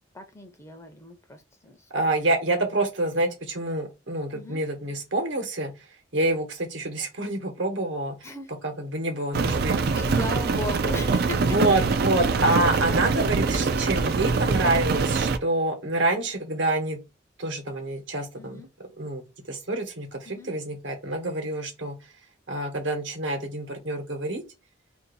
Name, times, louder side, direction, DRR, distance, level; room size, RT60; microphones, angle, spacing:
voice 1, 0.1-1.9 4.3-4.6 8.2-8.5 9.6-9.7 9.9-11.9 18.4-18.7 20.2-20.5, left 2 dB, 15° left, 0.6 m, -37 dB
voice 2, 1.9-8.2 8.6-10.0 11.4-17.0 17.4-18.6 19.0-22.1 22.5-24.4, right 2 dB, 75° right, 1.2 m, -27 dB
Rain, 9.3-15.4, right 4 dB, 55° right, 0.4 m, -24 dB
2.7 x 2.6 x 3.8 m
head